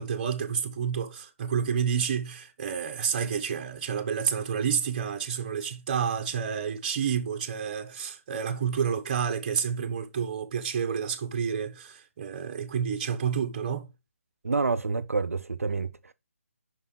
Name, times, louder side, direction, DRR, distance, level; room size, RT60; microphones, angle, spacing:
voice 1, 0.0-13.9, right 7 dB, 35° right, 1.4 m, -29 dB
voice 2, 14.4-16.1, right 4 dB, 80° right, 0.6 m, -28 dB
5.7 x 5.6 x 5.2 m
figure-of-eight pair, 150°, 8 cm